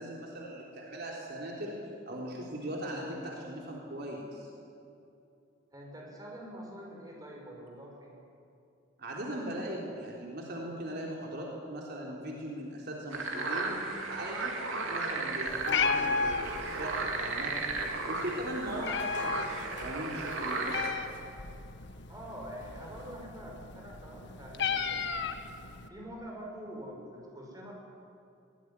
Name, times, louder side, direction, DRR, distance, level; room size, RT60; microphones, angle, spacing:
voice 1, 0.0-1.7 2.1-4.5 9.0-13.8 14.1-17.7 18.1-21.0, right 1 dB, 55° right, -2 dB, 3.8 m, -39 dB
voice 2, 5.7-8.1 22.1-25.3 25.9-27.7, equal, 20° right, -1 dB, 5.8 m, -45 dB
sound 1, 13.1-20.9, right 3 dB, 75° right, 3.3 m, -35 dB
Meow, 15.5-25.9, left 5 dB, 60° left, 1.5 m, -35 dB
22.5 x 19.5 x 9.9 m, 2.6 s
head